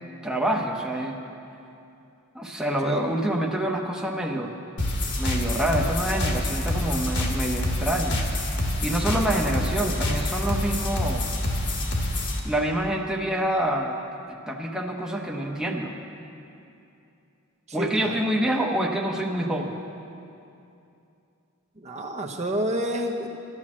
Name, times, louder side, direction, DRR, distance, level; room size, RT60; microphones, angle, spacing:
voice 1, 0.2-1.2 2.3-4.5 5.2-8.2 8.8-11.3 12.4-14.0 14.5-16.0 17.7-19.7, right 1 dB, 5° right, 0 dB, 0.9 m, -26 dB
sound 1, 4.8-12.4, left 1 dB, 60° left, 1.7 m, -27 dB
voice 2, 17.8-18.2 21.8-23.3, equal, 35° right, 2 dB, 0.9 m, -29 dB
12.5 x 11.5 x 7.4 m, 2.7 s
head